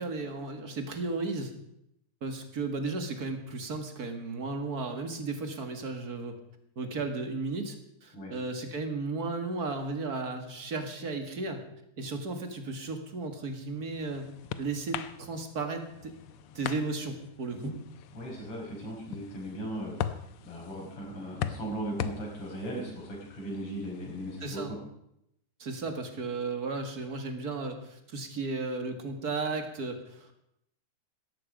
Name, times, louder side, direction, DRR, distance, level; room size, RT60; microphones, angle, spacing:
voice 1, 0.0-1.5 2.2-6.3 6.8-11.6 12.0-14.3 14.6-16.1 16.5-17.7 24.4-24.7 25.6-30.3, right 3 dB, 35° right, 6 dB, 1.9 m, -34 dB
sound 1, 13.4-24.5, left 9 dB, 80° left, 1.2 m, -41 dB
voice 2, 18.1-19.9 20.4-24.8, right 1 dB, 45° left, -1 dB, 6.3 m, -37 dB
17.5 x 14.0 x 5.2 m, 0.78 s
omnidirectional pair, 3.5 m